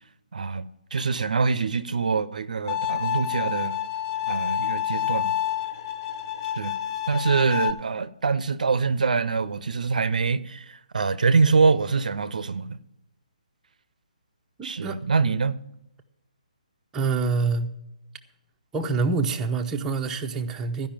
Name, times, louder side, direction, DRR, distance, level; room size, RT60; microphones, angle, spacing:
voice 1, 0.3-3.8 4.3-5.3 6.6-6.8 7.1-12.8 14.6-15.6, right 4 dB, 70° right, 0.6 m, -24 dB
Bowed string instrument, 2.7-7.7, left 11 dB, 40° left, 0.9 m, -28 dB
voice 2, 14.6-15.0 16.9-17.7 18.7-20.9, right 4 dB, 10° right, 0.8 m, -26 dB
13.0 x 5.5 x 8.8 m
figure-of-eight pair, 145°, 4 cm